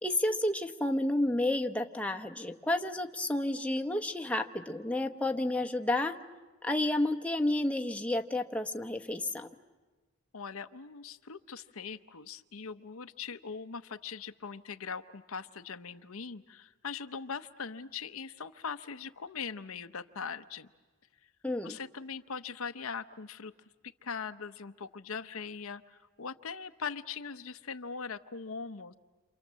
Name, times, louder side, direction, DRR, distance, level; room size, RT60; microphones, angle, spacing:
voice 1, 0.0-6.2 6.6-9.5 21.4-21.8, left 1 dB, 5° left, 3 dB, 0.9 m, -31 dB
voice 2, 10.3-20.7 21.6-23.5 23.8-28.9, left 5 dB, 85° left, 10 dB, 0.8 m, -41 dB
29.0 x 27.0 x 7.5 m, 1.3 s
head